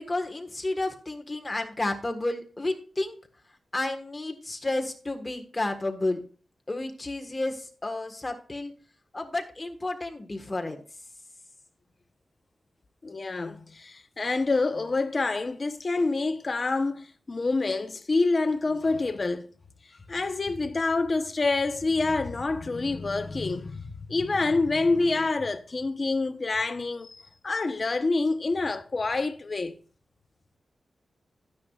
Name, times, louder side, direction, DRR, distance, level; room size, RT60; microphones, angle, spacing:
voice 1, 0.0-3.1 3.7-6.2 6.7-8.7 9.1-10.8, left 2 dB, 20° left, 1.5 m, -31 dB
voice 2, 13.0-19.5 20.1-29.7, left 3 dB, 40° left, 0.9 m, -27 dB
13.5 x 9.6 x 2.4 m
wide cardioid pair, 125°, 0 cm